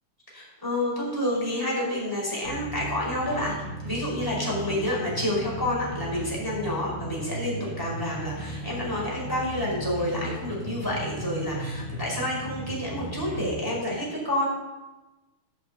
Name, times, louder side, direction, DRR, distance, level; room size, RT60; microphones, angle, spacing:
voice 1, 0.3-3.5 3.8-14.4, left 1 dB, 5° left, -4 dB, 5.0 m, -29 dB
sound 1, 2.4-13.6, right 2 dB, 75° right, 3.9 m, -36 dB
10.5 x 10.0 x 8.3 m, 1.1 s
omnidirectional pair, 3.5 m